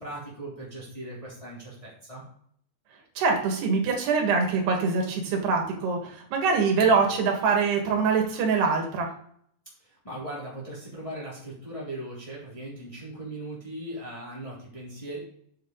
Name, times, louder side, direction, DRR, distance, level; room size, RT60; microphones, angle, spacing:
voice 1, 0.0-2.2 9.8-15.2, right 1 dB, 10° left, -6 dB, 2.5 m, -39 dB
voice 2, 3.2-9.1, right 5 dB, 90° right, 2 dB, 3.7 m, -24 dB
7.9 x 7.6 x 3.9 m, 0.64 s
omnidirectional pair, 4.6 m